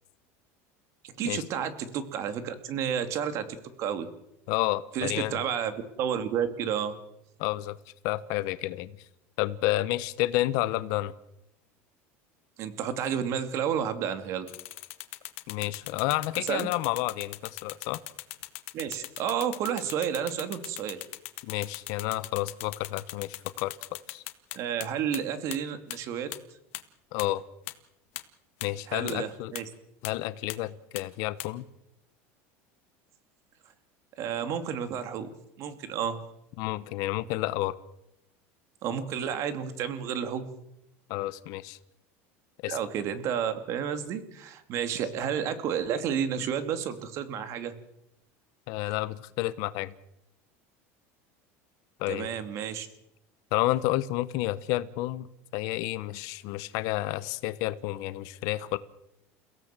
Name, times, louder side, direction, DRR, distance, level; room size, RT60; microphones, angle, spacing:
voice 1, 1.0-3.4 3.8-4.1 4.9-6.9 12.6-14.5 16.3-16.7 18.7-21.0 24.5-26.3 28.9-29.7 34.2-35.3 35.6-36.2 38.8-40.5 42.7-47.7 52.1-52.9, right 8 dB, 45° right, 10 dB, 2.6 m, -31 dB
voice 2, 4.5-5.4 7.4-7.8 8.0-8.9 9.4-11.1 15.5-18.0 21.4-23.8 24.1-24.2 27.1-27.4 28.6-29.5 30.0-31.6 36.6-37.7 41.1-41.8 42.6-42.8 48.7-49.9 52.0-52.3 53.5-55.3 55.5-58.8, left 17 dB, 60° left, 14 dB, 1.1 m, -30 dB
sound 1, 14.5-24.9 25.1-25.2 25.5-25.6 25.9-26.0 26.3-26.4 26.7-26.8 27.2-27.3 27.7-27.8 28.2-28.3 28.6-28.7 29.1-29.2 29.6-29.7 30.0-30.1 30.5-30.6 31.0-31.1 31.4-31.5, left 21 dB, 80° left, 1.8 m, -38 dB
29.5 x 16.5 x 7.6 m, 0.84 s
cardioid pair, 155°, 7 cm